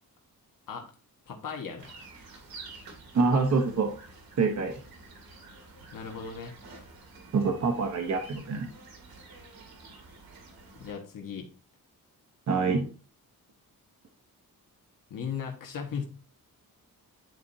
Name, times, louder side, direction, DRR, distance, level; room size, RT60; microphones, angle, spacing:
voice 1, 1.3-2.0 5.9-6.9 10.8-11.5 15.1-16.0, left 6 dB, 65° left, 2 dB, 1.5 m, -37 dB
sound 1, 1.8-10.9, right 3 dB, 85° right, 2.1 m, -49 dB
voice 2, 3.1-3.9 4.4-4.7 7.3-8.7 12.5-12.9, right 4 dB, 50° right, 3 dB, 1.0 m, -25 dB
11.0 x 4.2 x 2.7 m, 0.36 s
wide cardioid pair, 160°, 35 cm